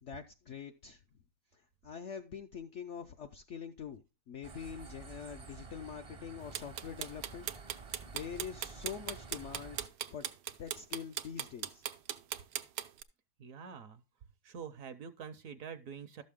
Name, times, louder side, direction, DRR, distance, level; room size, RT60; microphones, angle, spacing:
voice 1, 0.0-1.0 1.5-7.5 8.1-10.3 10.6-11.8, left 7 dB, 65° left, 6 dB, 0.7 m, -45 dB
sound 1, 4.4-9.9, right 4 dB, 35° right, 0.6 m, -50 dB
sound 2, 6.5-13.0, right 11 dB, 90° right, 1.3 m, -38 dB
voice 2, 13.4-14.0 14.4-16.2, right 7 dB, 65° right, 11 dB, 1.0 m, -46 dB
12.0 x 6.5 x 3.6 m, 0.28 s
omnidirectional pair, 1.8 m